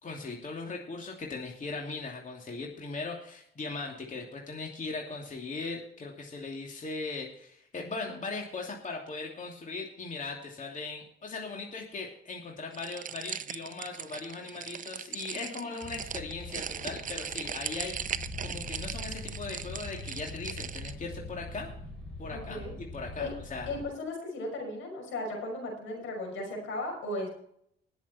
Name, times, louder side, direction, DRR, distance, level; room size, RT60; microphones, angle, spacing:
voice 1, 0.0-21.7 22.2-22.6 22.9-23.7, left 3 dB, 40° left, 0 dB, 2.8 m, -39 dB
sound 1, 12.7-20.9, right 8 dB, 40° right, 0.7 m, -39 dB
sound 2, 15.8-23.8, left 2 dB, 5° left, 5.0 m, -43 dB
voice 2, 22.3-22.7 23.2-23.3 23.7-27.3, left 2 dB, 80° left, 1 dB, 5.7 m, -36 dB
20.0 x 7.2 x 4.4 m, 0.68 s
cardioid pair, 90°, 20 cm